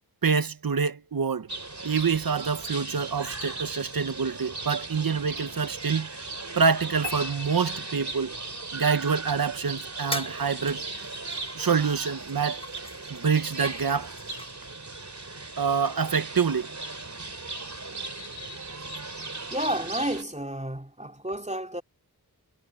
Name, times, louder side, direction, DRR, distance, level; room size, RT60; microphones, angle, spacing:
voice 1, 0.2-1.5 1.8-6.1 6.5-8.3 8.7-10.8 11.5-12.6 13.1-14.1 15.6-16.7, right 5 dB, 65° right, 1.2 m, -26 dB
sound 1, 1.5-20.2, right 3 dB, 45° right, 3.9 m, -37 dB
sound 2, 7.0-8.6, left 3 dB, 80° right, 6.4 m, -40 dB
sound 3, 10.1-10.4 10.7-14.5, left 1 dB, 15° left, 1.3 m, -41 dB
voice 2, 19.5-21.8, right 1 dB, 20° right, 3.5 m, -31 dB
wide cardioid pair, 50°, 38 cm